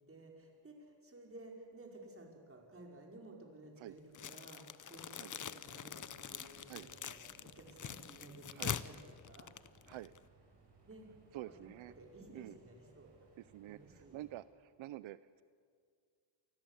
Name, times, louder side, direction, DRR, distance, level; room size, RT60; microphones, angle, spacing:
voice 1, 0.1-7.1 7.4-9.0 9.3-9.5 10.8-11.1 11.5-13.1 13.7-14.2, right 2 dB, 30° right, 0 dB, 5.0 m, -55 dB
sound 1, 4.1-10.2, left 8 dB, 40° left, 0.8 m, -44 dB
sound 2, 6.0-14.4, right 4 dB, 60° right, 6.3 m, -66 dB
voice 2, 11.3-11.9 12.3-12.6 13.4-15.4, right 14 dB, 85° right, 16 dB, 0.7 m, -48 dB
28.0 x 20.0 x 8.1 m, 2.1 s
cardioid pair, 115°, 46 cm